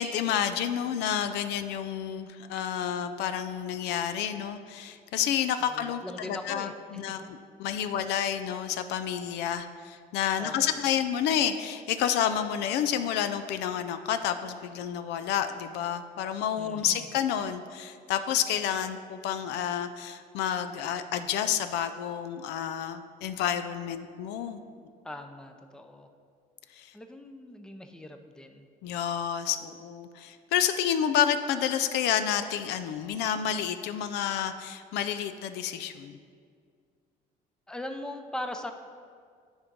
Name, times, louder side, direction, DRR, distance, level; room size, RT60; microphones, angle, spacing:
voice 1, 0.0-24.6 26.8-26.9 28.8-36.2, left 9 dB, 85° left, 10 dB, 0.4 m, -30 dB
voice 2, 5.6-7.3 10.4-10.8 16.6-17.1 25.0-26.1 26.9-28.7 37.7-38.7, left 1 dB, 5° left, 6 dB, 0.5 m, -40 dB
9.6 x 3.6 x 5.2 m, 2.1 s
cardioid pair, 110°, 17 cm